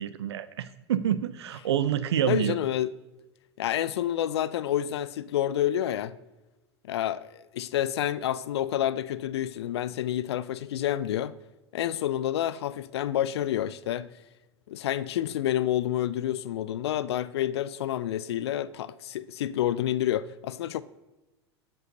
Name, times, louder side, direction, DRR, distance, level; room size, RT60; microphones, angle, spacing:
voice 1, 0.0-2.6, right 10 dB, 75° right, 0.5 m, -27 dB
voice 2, 2.3-2.9 3.6-6.1 6.8-11.3 11.7-14.1 14.7-20.8, left 11 dB, 70° left, 0.4 m, -29 dB
13.5 x 5.4 x 2.6 m
hypercardioid pair, 90°, 14 cm